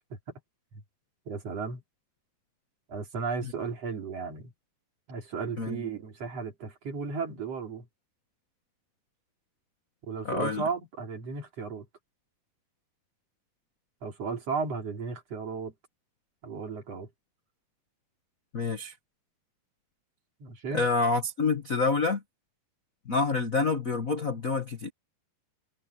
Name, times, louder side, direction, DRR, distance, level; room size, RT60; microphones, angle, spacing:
voice 1, 1.3-1.8 2.9-4.5 5.1-7.9 10.0-11.9 14.0-15.7 16.4-17.1 20.4-20.9, right 5 dB, 45° right, 4.2 m, -35 dB
voice 2, 5.6-5.9 10.2-10.6 18.5-18.9 20.7-22.2 23.0-24.9, left 4 dB, 60° left, 0.8 m, -27 dB
omnidirectional pair, 4.0 m